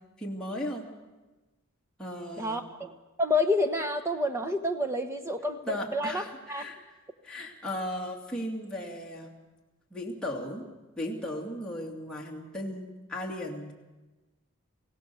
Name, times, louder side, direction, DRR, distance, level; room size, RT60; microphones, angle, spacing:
voice 1, 0.2-0.9 2.0-2.6 5.7-6.8 7.2-9.3 9.9-10.7 11.0-13.7, left 1 dB, 5° left, -3 dB, 2.5 m, -36 dB
voice 2, 2.4-2.9 3.2-6.2 6.5-6.6, left 1 dB, 10° right, 8 dB, 1.1 m, -28 dB
23.0 x 16.5 x 7.0 m, 1.2 s
head